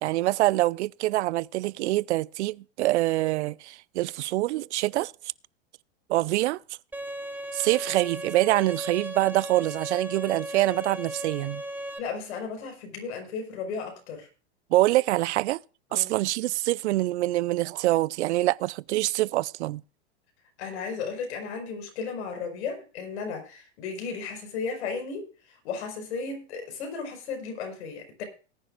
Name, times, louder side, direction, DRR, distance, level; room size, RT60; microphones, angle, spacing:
voice 1, 0.0-5.1 6.1-6.6 7.5-11.6 14.7-15.6 15.9-19.8, right 17 dB, 70° right, 0.6 m, -25 dB
Bowed string instrument, 6.9-12.0, right 1 dB, 5° right, 1.2 m, -36 dB
voice 2, 12.0-14.3 15.9-16.2 20.6-28.2, left 5 dB, 70° left, 5.3 m, -35 dB
19.5 x 10.0 x 2.5 m
hypercardioid pair, 125°, 35 cm